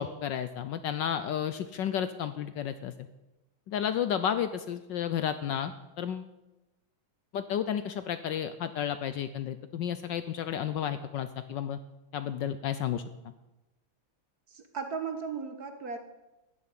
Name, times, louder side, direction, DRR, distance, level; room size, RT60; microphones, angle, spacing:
voice 1, 0.0-2.9 3.7-6.3 7.3-11.8 12.1-13.0, left 9 dB, 70° left, 11 dB, 1.2 m, -32 dB
voice 2, 14.5-16.0, right 5 dB, 50° right, 7 dB, 1.5 m, -36 dB
13.5 x 7.3 x 9.6 m, 1.0 s
omnidirectional pair, 2.4 m